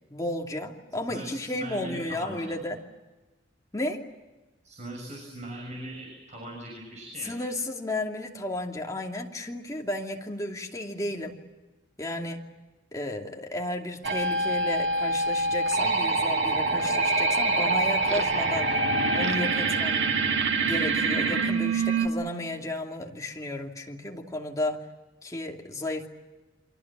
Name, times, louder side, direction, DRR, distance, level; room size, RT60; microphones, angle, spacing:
voice 1, 0.1-2.8 3.7-4.0 7.2-11.4 12.0-12.4 12.9-18.7 19.1-20.1 20.6-24.8 25.2-26.1, left 1 dB, 20° left, 1 dB, 2.7 m, -33 dB
voice 2, 1.1-2.6 4.6-7.3, right 1 dB, 40° right, 1 dB, 6.7 m, -40 dB
sound 1, 14.0-22.1, right 3 dB, 75° right, 2.5 m, -25 dB
29.0 x 25.0 x 7.4 m, 1.1 s
head